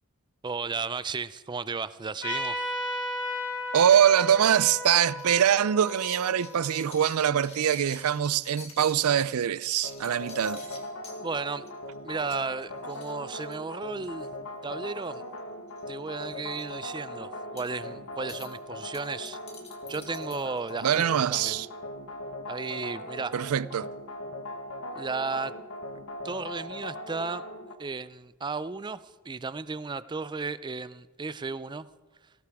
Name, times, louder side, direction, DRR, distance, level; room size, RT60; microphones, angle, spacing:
voice 1, 0.4-2.6 11.2-11.7 12.0-14.3 14.6-15.2 15.9-19.4 19.9-21.6 22.5-23.3 25.0-25.5 26.2-27.4 27.8-31.9, right 4 dB, 20° right, 0.4 m, -34 dB
Trumpet, 2.2-7.3, left 1 dB, 55° left, 3.7 m, -35 dB
voice 2, 3.7-10.6 20.8-21.7 23.3-23.9, right 9 dB, 85° right, 0.4 m, -23 dB
sound 1, 5.2-9.0 9.5-11.2 11.7-11.9 12.2-12.3 12.6-12.7 12.9-14.3 15.0-15.4 15.7-15.8 16.2-16.6 17.6-17.8 18.3-18.5 18.9-21.2, left 4 dB, 30° left, 2.4 m, -48 dB
sound 2, 9.8-27.7, left 1 dB, 75° left, 1.3 m, -39 dB
19.0 x 17.5 x 3.5 m
head